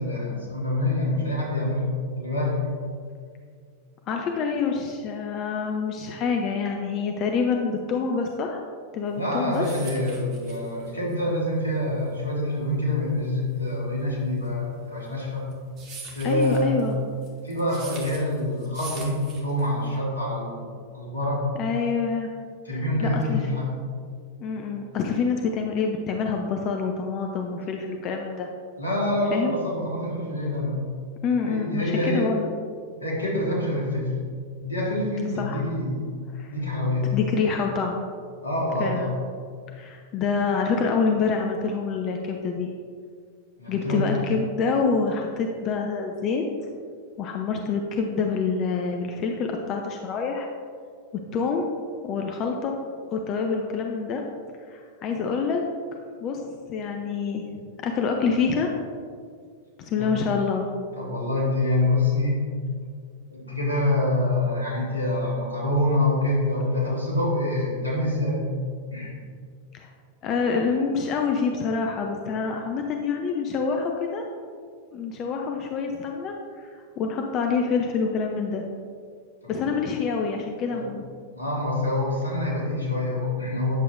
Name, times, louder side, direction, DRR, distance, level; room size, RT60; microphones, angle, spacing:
voice 1, 0.0-1.9 2.1-2.6 9.2-15.5 16.1-16.8 17.4-21.5 22.6-23.7 28.8-30.7 31.4-32.3 33.0-34.1 34.6-36.1 36.5-37.1 38.4-39.1 43.6-44.1 60.0-60.1 61.0-62.4 63.3-68.4 68.9-69.2 80.7-80.8 81.3-83.7, left 1 dB, 80° left, -4 dB, 1.9 m, -26 dB
voice 2, 4.1-8.6 8.9-9.7 16.2-17.0 21.6-22.3 23.0-23.4 24.4-28.5 29.3-29.5 31.2-32.5 35.3-35.6 36.3-36.5 37.1-38.0 38.8-39.1 39.7-42.7 43.7-46.4 47.2-50.5 51.3-51.7 52.0-52.8 53.1-54.2 54.7-55.6 56.2-56.4 56.7-57.4 57.8-58.7 59.8-60.7 69.7-69.9 70.2-74.3 74.9-76.4 76.7-78.6 79.5-81.0, left 5 dB, 35° left, 2 dB, 0.5 m, -26 dB
sound 1, 9.2-20.0, right 4 dB, 35° right, 1.3 m, -44 dB
8.8 x 6.7 x 2.5 m, 2.1 s
figure-of-eight pair, 90°, 0 cm